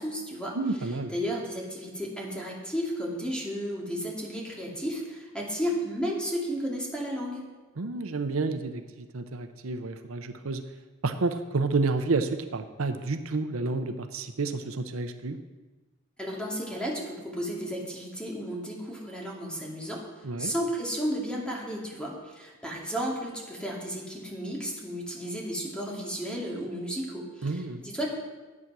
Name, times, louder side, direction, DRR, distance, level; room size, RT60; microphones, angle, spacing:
voice 1, 0.0-0.5 1.1-7.4 16.2-20.0 20.4-28.1, equal, 5° left, -3 dB, 2.3 m, -33 dB
voice 2, 0.5-1.1 7.8-10.6 11.0-15.4 20.2-20.5 27.4-27.8, right 3 dB, 75° right, 8 dB, 0.7 m, -30 dB
11.0 x 8.5 x 6.1 m, 1.2 s
head